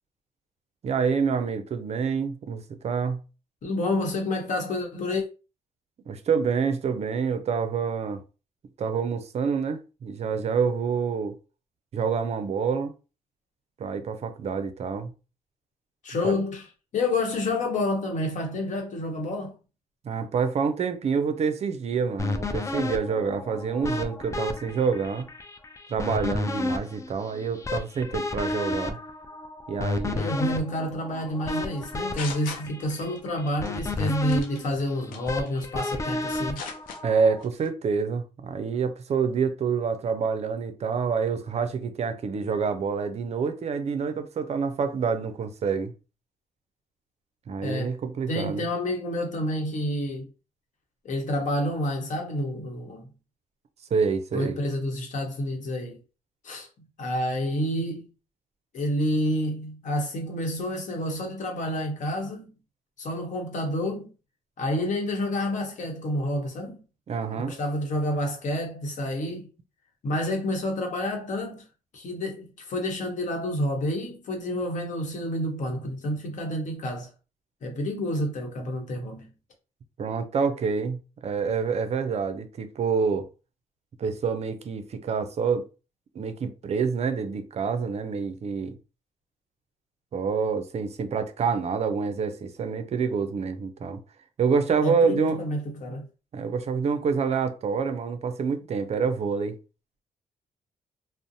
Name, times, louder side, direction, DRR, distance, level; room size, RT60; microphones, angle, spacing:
voice 1, 0.8-3.2 6.1-8.2 8.8-11.4 11.9-12.9 13.8-15.1 16.2-16.4 20.0-25.3 25.9-29.0 29.7-30.2 32.7-32.8 37.0-45.9 47.5-48.6 53.9-54.6 67.1-67.5 80.0-83.3 84.0-85.6 86.1-88.8 90.1-94.0 94.4-95.4 96.3-99.6, right 5 dB, 50° right, 0.4 m, -27 dB
voice 2, 3.6-5.2 16.0-16.7 16.9-19.6 30.1-36.6 47.6-48.0 48.3-50.3 51.0-53.1 54.3-56.0 56.4-56.7 57.0-58.1 58.7-62.5 63.0-64.1 64.6-66.8 67.4-69.5 70.0-71.7 71.9-77.1 77.6-79.3 94.8-96.1, left 1 dB, 60° left, 0.9 m, -29 dB
sound 1, 22.2-37.4, left 2 dB, 20° left, 0.4 m, -32 dB
sound 2, 31.8-33.2 33.5-33.8 34.3-34.6 35.1-36.0 36.3-37.0 37.4-37.7, left 5 dB, 80° left, 0.5 m, -39 dB
2.5 x 2.0 x 2.6 m
supercardioid pair, 65°, 14 cm